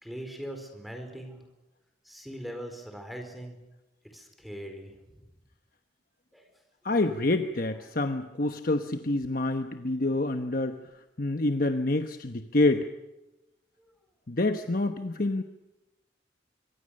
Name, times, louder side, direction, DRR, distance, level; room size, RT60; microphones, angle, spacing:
voice 1, 0.0-1.4 2.1-3.6 4.1-4.9 6.3-6.4, equal, ahead, 4 dB, 4.5 m, -40 dB
voice 2, 6.8-10.8 11.2-12.8 14.3-15.4, left 2 dB, 50° left, 7 dB, 1.1 m, -27 dB
25.0 x 25.0 x 6.6 m, 1.0 s
head